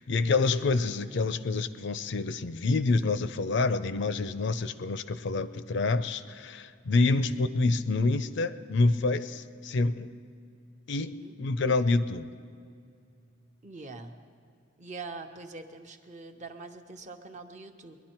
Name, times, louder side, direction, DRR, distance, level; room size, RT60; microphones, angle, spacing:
voice 1, 0.0-10.1 10.9-12.3, left 3 dB, 60° left, 13 dB, 0.5 m, -27 dB
voice 2, 11.0-11.4 13.6-14.1 14.8-18.0, right 3 dB, 35° right, 6 dB, 0.8 m, -43 dB
21.0 x 11.0 x 4.4 m, 2.3 s
head